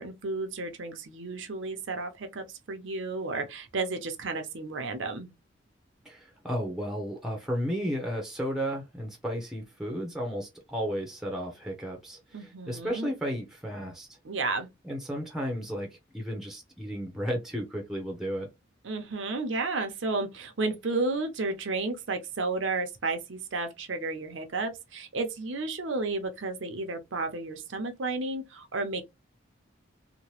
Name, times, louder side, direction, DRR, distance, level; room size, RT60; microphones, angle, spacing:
voice 1, 0.0-5.3 12.3-13.1 14.2-14.7 18.8-29.0, right 3 dB, 75° right, 0.7 m, -32 dB
voice 2, 6.0-14.2 14.8-18.5, equal, ahead, 0.7 m, -33 dB
2.9 x 2.2 x 3.1 m
head